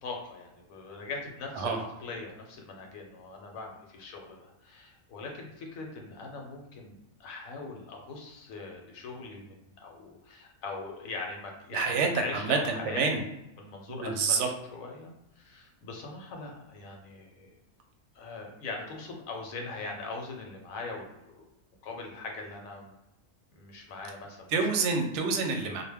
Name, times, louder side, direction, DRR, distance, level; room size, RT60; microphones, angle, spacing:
voice 1, 0.0-13.1 13.6-17.5 18.1-21.5 21.8-22.9 23.5-24.5, left 3 dB, 80° left, 1 dB, 1.0 m, -41 dB
voice 2, 11.7-13.2 13.9-14.5 24.5-25.8, right 4 dB, 65° right, 3 dB, 0.8 m, -28 dB
2.2 x 2.1 x 3.3 m, 0.90 s
omnidirectional pair, 1.4 m